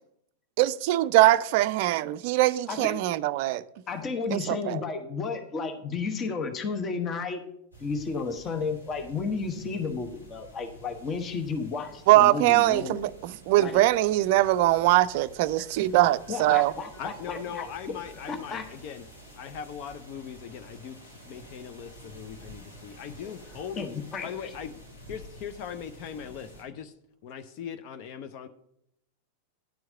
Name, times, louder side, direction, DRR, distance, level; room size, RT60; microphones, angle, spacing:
voice 1, 0.6-3.6 4.3-4.8 12.1-16.7, right 16 dB, 50° right, 0.4 m, -22 dB
voice 2, 3.9-7.4 7.8-13.1 13.6-13.8 15.6-15.7 16.3-17.6 18.3-18.7 23.2-23.3 23.8-24.5, left 4 dB, 25° left, 1.0 m, -33 dB
sound 1, 7.7-26.6, right 1 dB, 85° left, 3.2 m, -50 dB
voice 3, 17.0-19.1 19.4-23.9 24.2-24.8 25.1-26.9 27.2-28.5, left 8 dB, 45° left, 0.6 m, -39 dB
10.5 x 4.6 x 7.4 m
figure-of-eight pair, 90°, 0 cm